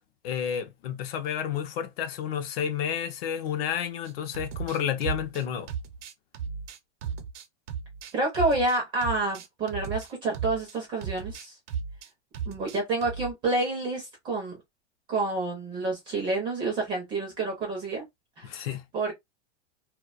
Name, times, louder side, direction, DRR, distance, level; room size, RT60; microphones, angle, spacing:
voice 1, 0.2-5.7 18.4-18.8, left 8 dB, 55° left, 0.5 m, -31 dB
sound 1, 4.0-10.8 11.0-12.1 12.3-13.3, right 6 dB, 75° right, 0.6 m, -35 dB
voice 2, 8.1-11.6 12.5-14.6 15.1-18.0 18.4-18.7 18.9-19.1, right 2 dB, 15° right, 0.4 m, -28 dB
2.4 x 2.1 x 2.4 m
supercardioid pair, 160°, 36 cm